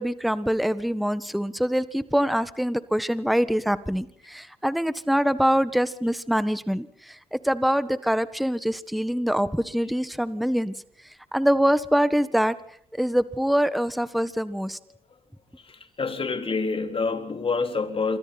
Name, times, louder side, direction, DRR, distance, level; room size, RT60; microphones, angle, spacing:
voice 1, 0.0-10.7 11.3-12.5 12.9-14.8, equal, ahead, 1.5 m, -24 dB
voice 2, 15.6-18.2, left 4 dB, 40° left, 3.9 m, -27 dB
27.0 x 24.5 x 4.3 m
supercardioid pair, 60°, 14 cm